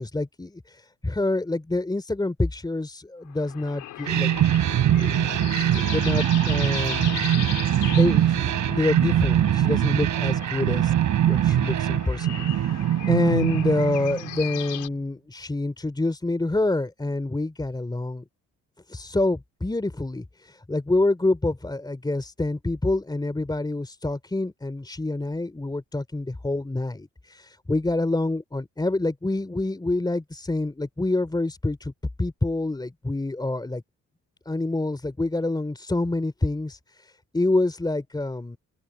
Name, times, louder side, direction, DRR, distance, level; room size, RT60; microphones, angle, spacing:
voice 1, 0.0-4.3 4.9-5.2 5.7-7.3 7.9-10.9 11.2-12.6 13.1-18.2 18.9-31.9 32.2-33.8 34.4-38.6, left 2 dB, 15° left, 3.4 m, -27 dB
sound 1, 3.3-14.9, left 14 dB, 85° left, 4.7 m, -38 dB
sound 2, 4.1-14.6, right 11 dB, 75° right, 7.1 m, -22 dB
open air
cardioid pair, 90°, 30 cm